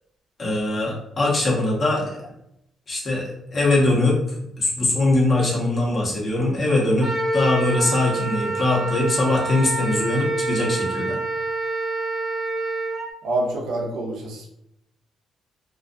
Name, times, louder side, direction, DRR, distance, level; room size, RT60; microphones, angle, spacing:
voice 1, 0.4-2.1 2.9-4.2 4.6-11.2, left 2 dB, 40° left, -4 dB, 1.0 m, -21 dB
Wind instrument woodwind instrument, 7.0-13.1, right 2 dB, 35° right, 0.8 m, -27 dB
voice 2, 13.2-14.5, right 2 dB, 85° right, 0 dB, 0.6 m, -26 dB
2.4 x 2.2 x 2.5 m, 0.79 s
cardioid pair, 90°, 0 cm